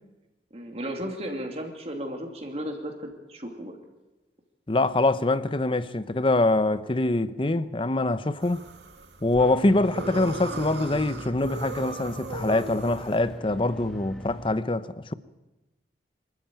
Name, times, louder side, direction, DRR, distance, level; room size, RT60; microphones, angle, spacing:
voice 1, 0.5-3.8, equal, 35° right, 2.6 m, -35 dB
voice 2, 4.7-8.6 9.2-15.1, left 2 dB, 30° left, 0.7 m, -24 dB
sound 1, 8.4-13.4, right 2 dB, 85° right, 2.0 m, -38 dB
sound 2, 9.4-14.5, equal, 5° left, 1.9 m, -40 dB
25.0 x 13.5 x 9.1 m
head